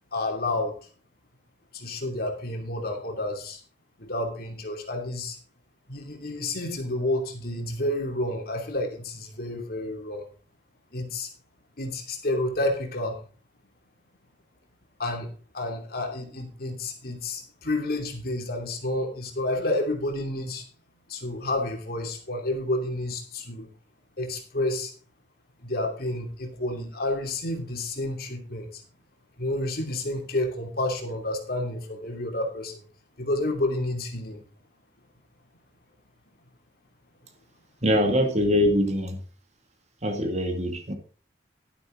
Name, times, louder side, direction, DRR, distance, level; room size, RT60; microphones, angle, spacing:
voice 1, 0.1-0.8 1.7-3.6 4.0-5.4 5.9-10.3 10.9-11.3 11.8-13.2 15.0-15.3 15.5-20.7 21.1-23.7 24.2-24.9 25.6-28.8 29.4-32.8 33.2-34.4, left 1 dB, 60° left, 2.7 m, -30 dB
voice 2, 37.8-39.2 40.0-40.9, equal, 40° right, 2.1 m, -23 dB
11.5 x 10.0 x 3.8 m
head